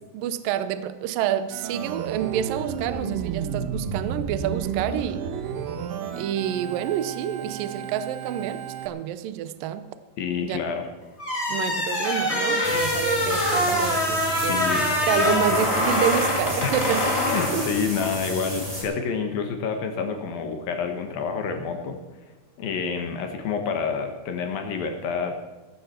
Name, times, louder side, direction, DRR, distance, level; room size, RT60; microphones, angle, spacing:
voice 1, 0.1-5.3 6.2-9.9 10.4-10.6 11.5-14.6 15.1-17.0 17.5-17.6, right 10 dB, 85° right, 11 dB, 2.0 m, -28 dB
Organ, 1.5-8.9, right 7 dB, 65° right, 2.4 m, -32 dB
voice 2, 10.2-10.8 14.4-14.9 15.2-15.5 16.6-16.8 17.2-22.0 22.6-25.4, left 5 dB, 65° left, 5 dB, 2.7 m, -28 dB
sound 1, 11.2-18.2, left 1 dB, 20° left, 2.4 m, -24 dB
sound 2, 12.6-18.8, left 1 dB, 10° right, 5.8 m, -32 dB
17.0 x 15.0 x 4.4 m, 1.2 s
omnidirectional pair, 5.1 m